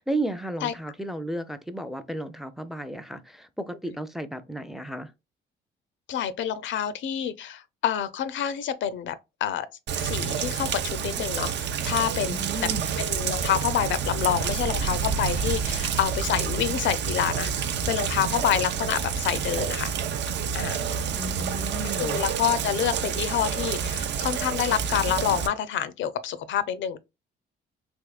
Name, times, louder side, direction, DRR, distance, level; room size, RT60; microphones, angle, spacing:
voice 1, 0.0-5.1 12.2-13.0 21.2-22.2, right 1 dB, ahead, 0.4 m, -33 dB
voice 2, 6.1-9.2 9.4-9.7 10.0-12.4 13.0-19.9 20.5-20.8 22.0-27.0, left 10 dB, 70° left, 0.5 m, -27 dB
Rain, 9.9-25.5, right 7 dB, 65° right, 0.5 m, -29 dB
Boom, 12.6-17.0, right 5 dB, 90° right, 0.8 m, -36 dB
3.5 x 3.0 x 2.3 m
cardioid pair, 90°, 20 cm